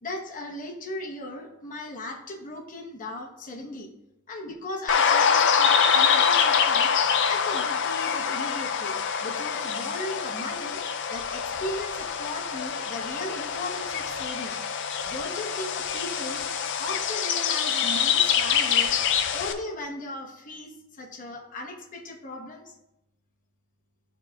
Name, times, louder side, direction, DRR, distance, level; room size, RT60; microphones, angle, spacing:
voice 1, 0.0-3.9 4.3-10.8 11.1-14.5 15.0-16.5 16.8-19.0 19.3-22.7, left 1 dB, 40° left, 1 dB, 1.0 m, -37 dB
sound 1, 4.9-19.5, left 7 dB, 60° left, 0.5 m, -25 dB
11.0 x 4.0 x 2.3 m, 0.90 s
head